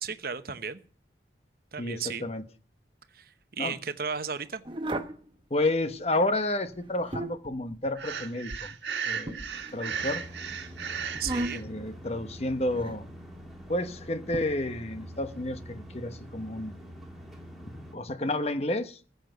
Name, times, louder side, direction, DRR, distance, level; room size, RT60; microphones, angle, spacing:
voice 1, 0.0-0.8 1.7-2.3 3.1-4.6 11.2-11.6, right 6 dB, 55° right, 10 dB, 1.0 m, -35 dB
voice 2, 1.8-2.4 3.6-3.7 5.5-8.8 9.0-9.4 9.7-10.2 11.5-13.1 13.7-16.7 17.6-19.0, left 1 dB, 35° left, 10 dB, 1.0 m, -31 dB
sound 1, 4.7-5.2 6.7-7.5 9.3-10.2 11.1-11.8 12.7-13.1 14.3-14.4, right 1 dB, 25° right, 1.0 m, -35 dB
Breathing, 7.9-11.6, right 6 dB, 75° right, 1.6 m, -35 dB
sound 2, 9.9-17.9, equal, ahead, 2.6 m, -45 dB
14.5 x 8.1 x 7.8 m, 0.41 s
head